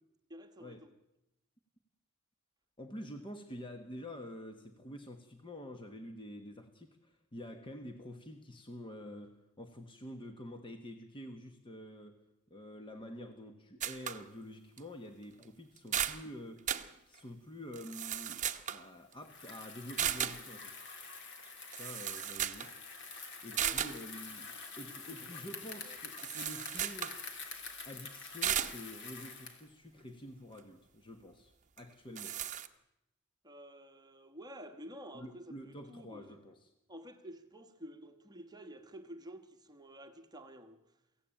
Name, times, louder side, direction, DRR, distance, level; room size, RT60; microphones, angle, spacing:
voice 1, 0.3-0.9 23.5-24.0 24.9-25.1 25.5-25.6 25.8-26.0 33.4-36.4 36.9-40.8, equal, 20° right, 1.3 m, -50 dB
voice 2, 2.8-12.2 12.5-16.7 17.1-20.7 21.7-22.7 23.4-27.2 27.8-32.4 35.1-36.7, left 1 dB, 25° left, 1.2 m, -48 dB
sound 1, 13.8-14.2 14.8-14.9 15.4-15.5 15.8-16.2 16.7-16.9 17.7-18.8 20.0-20.4 21.5-21.6 21.7-22.7 23.0-23.1 23.6-24.0 26.2-27.2 28.4-28.8 31.8-31.9 32.1-32.7, right 10 dB, 35° right, 0.9 m, -35 dB
Bicycle, 19.2-29.7, left 4 dB, 60° left, 3.0 m, -47 dB
23.0 x 16.0 x 8.9 m
head